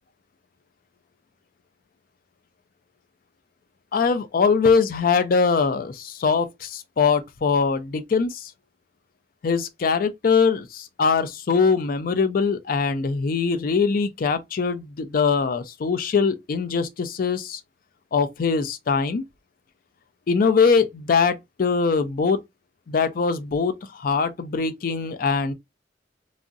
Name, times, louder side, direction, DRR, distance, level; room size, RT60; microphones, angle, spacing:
voice 1, 3.9-8.5 9.4-17.6 18.1-19.2 20.3-22.4 22.9-25.5, left 5 dB, 55° left, 0.4 m, -22 dB
3.5 x 2.0 x 2.5 m
head